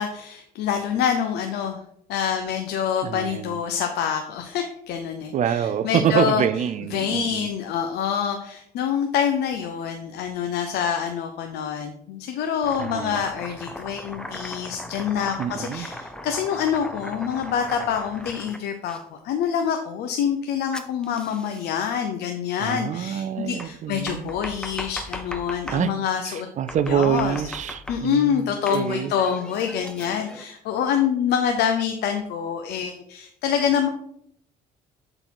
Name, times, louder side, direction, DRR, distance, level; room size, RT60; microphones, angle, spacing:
voice 1, 0.0-1.8 2.1-6.4 6.9-26.5 26.9-27.4 27.9-33.9, left 8 dB, 75° left, 5 dB, 0.7 m, -26 dB
voice 2, 3.0-3.6 5.3-7.5 12.8-13.2 15.4-15.9 22.6-24.3 25.7-25.9 26.3-29.1, right 9 dB, 45° right, 12 dB, 0.4 m, -26 dB
Domestic sounds home sounds, 12.6-19.0 20.7-21.9 23.6-25.9 26.7-28.2 28.7-30.4, left 1 dB, 5° left, 0.5 m, -38 dB
7.7 x 3.9 x 4.6 m, 0.73 s
cardioid pair, 110°, 17 cm